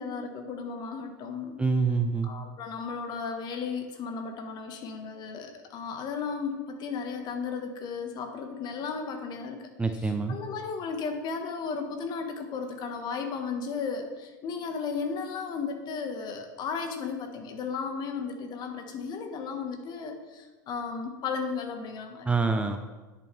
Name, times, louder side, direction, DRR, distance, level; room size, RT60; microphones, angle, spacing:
voice 1, 0.0-1.6 2.2-9.6 10.0-22.3, left 5 dB, 45° left, 5 dB, 1.6 m, -35 dB
voice 2, 1.6-2.3 9.8-10.4 22.2-22.8, right 4 dB, 10° right, 6 dB, 0.8 m, -26 dB
10.5 x 8.6 x 3.5 m, 1.2 s
hypercardioid pair, 90°, 10 cm